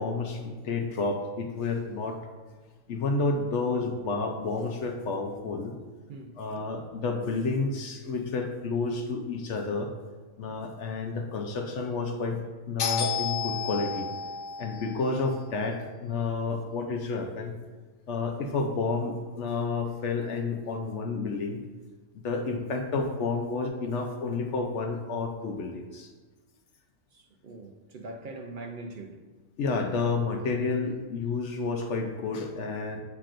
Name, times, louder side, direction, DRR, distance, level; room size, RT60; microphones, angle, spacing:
voice 1, 0.0-2.2 2.9-5.8 6.4-9.9 10.4-12.4 12.7-17.6 18.1-21.6 22.2-26.1 29.6-33.0, left 4 dB, 65° left, 0.9 m, -30 dB
voice 2, 6.1-6.9 27.1-29.2, right 2 dB, 65° right, 0.5 m, -43 dB
8.2 x 5.8 x 2.5 m
omnidirectional pair, 1.4 m